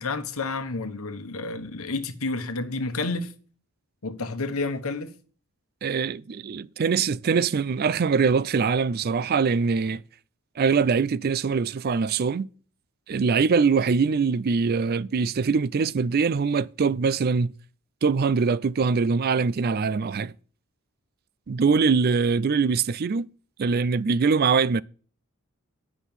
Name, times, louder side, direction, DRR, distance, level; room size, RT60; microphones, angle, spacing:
voice 1, 0.0-3.3 4.0-5.1, left 3 dB, 70° left, 1.2 m, -30 dB
voice 2, 5.8-10.0 10.6-12.5 13.1-17.5 18.0-20.3 21.5-23.3 23.6-24.8, right 5 dB, 45° right, 0.4 m, -23 dB
10.0 x 6.1 x 7.3 m
head